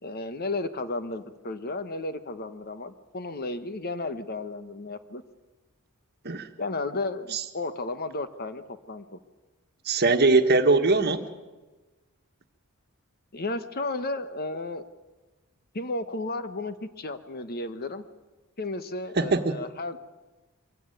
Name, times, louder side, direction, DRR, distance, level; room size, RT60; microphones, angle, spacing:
voice 1, 0.0-5.2 6.6-9.0 13.3-14.8 15.7-18.0 18.6-20.0, left 2 dB, 45° left, 11 dB, 1.2 m, -33 dB
voice 2, 9.9-11.2 19.2-19.6, right 3 dB, 45° right, 7 dB, 1.5 m, -21 dB
23.5 x 16.5 x 9.2 m, 1.2 s
head